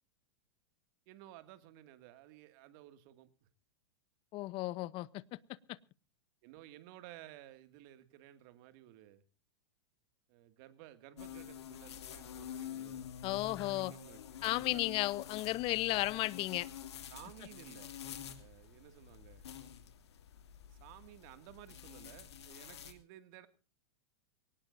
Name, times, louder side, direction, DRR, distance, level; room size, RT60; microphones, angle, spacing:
voice 1, 1.1-3.5 6.4-9.2 10.3-15.0 17.1-17.9 18.4-19.5 20.7-23.5, right 14 dB, 55° right, 2.3 m, -55 dB
voice 2, 4.3-5.4 5.7-5.8 13.2-13.9 14.4-16.7, left 18 dB, 40° left, 0.9 m, -34 dB
sound 1, 11.2-22.9, left 9 dB, 80° left, 2.8 m, -48 dB
22.5 x 19.0 x 2.7 m
hypercardioid pair, 110°, 14 cm